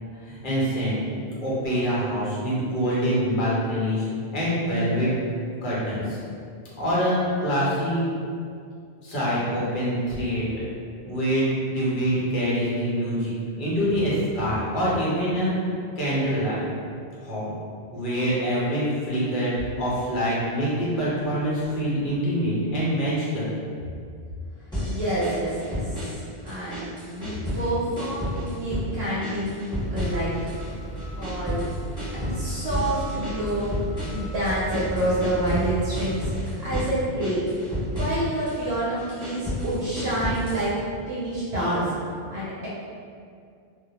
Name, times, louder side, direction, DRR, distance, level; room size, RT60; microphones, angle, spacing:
voice 1, 0.2-1.0 1.4-5.1 5.6-6.2 6.8-8.0 9.0-10.7 11.0-13.3 13.6-15.5 16.0-16.6 17.2-17.5 17.9-23.5, equal, 55° left, -8 dB, 0.9 m, -25 dB
sound 1, 24.7-26.2 26.5-27.7 28.0-28.9 29.2-30.7 31.0-35.7 35.9-36.9 37.2-38.6 39.0-40.7, equal, 5° left, 1.1 m, -31 dB
voice 2, 24.9-26.0 26.4-29.5 29.9-30.5 31.2-31.7 32.1-33.7 34.1-37.4 37.9-40.7 41.1-42.0 42.3-42.7, right 1 dB, 85° right, -10 dB, 0.9 m, -28 dB
sound 2, 29.8-36.1, right 1 dB, 45° right, 0.8 m, -35 dB
2.2 x 2.1 x 2.8 m, 2.3 s
omnidirectional pair, 1.0 m